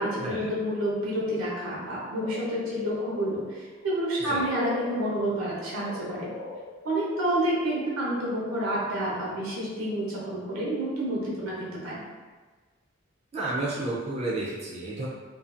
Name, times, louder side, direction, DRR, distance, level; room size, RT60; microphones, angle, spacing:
voice 1, 0.0-6.3 6.8-12.0, right 1 dB, 85° right, -6 dB, 0.8 m, -29 dB
sound 1, 2.2-8.0 8.2-8.3, left 3 dB, 80° left, 0.6 m, -39 dB
voice 2, 13.3-15.1, right 2 dB, 30° right, -6 dB, 0.3 m, -31 dB
2.5 x 2.3 x 2.4 m, 1.4 s
head